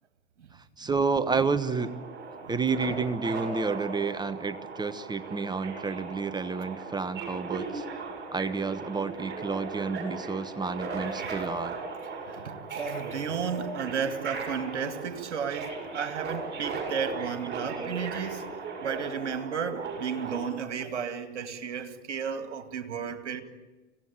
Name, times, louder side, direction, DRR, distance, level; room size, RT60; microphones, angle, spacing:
voice 1, 0.8-1.9 2.5-7.8 8.3-11.7 17.7-17.9 19.8-19.9, right 4 dB, 10° right, 1.1 m, -30 dB
Subway metro underground, 1.6-20.4, right 4 dB, 30° right, 7.8 m, -37 dB
voice 2, 12.3-18.4 18.8-23.4, right 7 dB, 70° right, 2.2 m, -33 dB
25.5 x 16.5 x 9.0 m
figure-of-eight pair, 85°, 35 cm